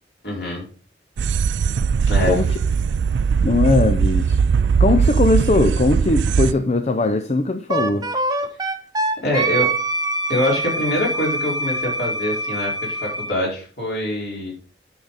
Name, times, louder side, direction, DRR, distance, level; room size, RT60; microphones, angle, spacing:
voice 1, 0.2-0.6 2.1-2.4 9.2-9.7 10.3-14.5, left 1 dB, 60° left, 4.6 m, -24 dB
sound 1, 1.2-6.5, right 6 dB, 70° right, 0.3 m, -19 dB
voice 2, 3.4-4.4 4.8-8.1, left 2 dB, 35° left, 0.5 m, -19 dB
Wind instrument woodwind instrument, 7.7-13.3, right 2 dB, 20° right, 0.8 m, -24 dB
9.7 x 6.4 x 4.1 m
head